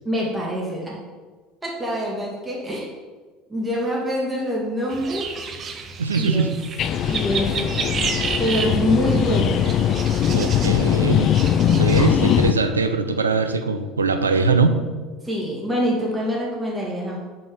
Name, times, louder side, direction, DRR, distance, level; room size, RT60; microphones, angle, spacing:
voice 1, 0.0-1.0 1.6-2.9 3.5-5.3 6.2-6.5 7.1-7.8 8.4-9.6 15.2-17.2, equal, 15° right, -4 dB, 2.0 m, -25 dB
sound 1, 4.9-12.4, right 5 dB, 35° right, 0.7 m, -31 dB
voice 2, 6.0-6.6 10.3-11.3 11.7-14.8, right 4 dB, 80° right, 8 dB, 0.5 m, -21 dB
sound 2, 6.8-12.5, left 9 dB, 45° left, 0.3 m, -20 dB
6.3 x 4.3 x 6.3 m, 1.4 s
figure-of-eight pair, 65°, 0 cm